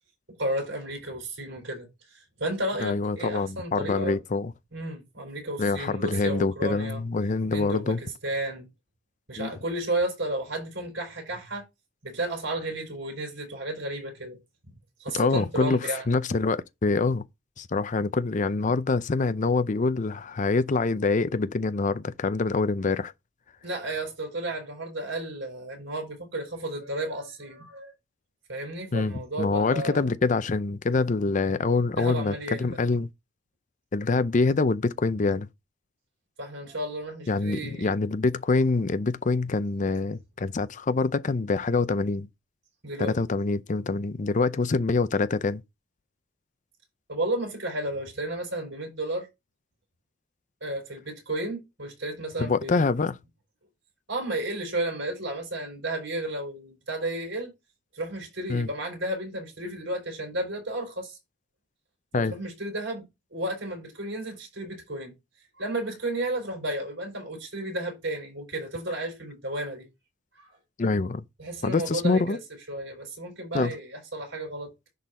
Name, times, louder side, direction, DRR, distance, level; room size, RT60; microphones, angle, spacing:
voice 1, 0.4-4.2 4.7-7.0 7.5-8.7 9.3-11.6 12.0-14.4 15.0-16.1 23.6-27.9 28.5-30.1 32.0-32.7 36.4-37.9 42.8-43.2 47.1-49.3 50.6-52.9 54.1-57.5 57.9-61.2 62.1-63.1 63.3-65.1 65.6-69.9 70.3-70.5 71.4-72.4 72.7-74.7, right 1 dB, 70° right, 4.6 m, -33 dB
voice 2, 2.8-4.5 5.6-8.0 9.4-9.5 15.1-17.2 17.6-23.1 28.9-33.1 33.9-35.5 37.3-42.3 43.0-45.6 52.4-53.1 58.5-58.7 62.1-62.3 70.8-71.2 71.6-72.4 73.5-73.7, left 3 dB, 40° left, 0.5 m, -25 dB
10.5 x 3.9 x 4.1 m
head